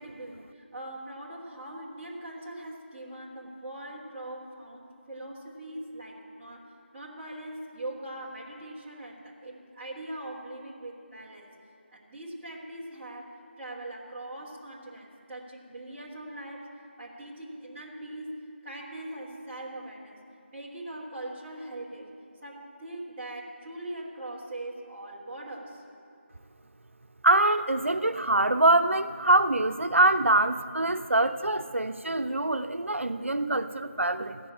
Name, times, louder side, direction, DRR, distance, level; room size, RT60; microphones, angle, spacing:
voice 1, 0.0-6.7 6.9-11.5 11.9-16.7 17.0-20.2 20.5-22.1 22.4-25.8, right 1 dB, 10° right, -9 dB, 1.4 m, -41 dB
voice 2, 27.2-34.4, right 2 dB, 90° right, 9 dB, 0.6 m, -24 dB
15.0 x 6.9 x 8.8 m, 2.5 s
figure-of-eight pair, 170°, 7 cm